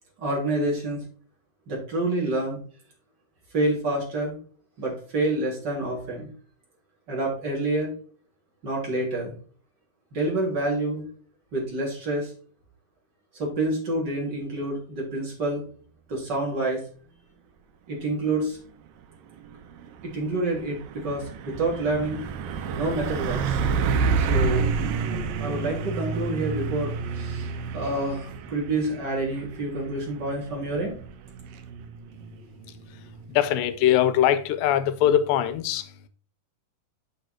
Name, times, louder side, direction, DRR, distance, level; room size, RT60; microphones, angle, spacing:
voice 1, 0.2-1.0 1.7-2.6 3.5-4.3 4.8-6.3 7.1-7.9 8.6-9.3 10.1-11.0 11.5-12.3 13.3-15.6 16.1-16.8 17.9-18.6 20.0-23.6 24.2-24.7 25.3-30.9, right 2 dB, 30° right, 3.6 m, -28 dB
Truck, 19.5-33.8, right 5 dB, 85° right, 2.5 m, -29 dB
voice 2, 33.3-35.8, left 11 dB, 90° left, 2.5 m, -21 dB
7.2 x 5.7 x 4.4 m
omnidirectional pair, 3.9 m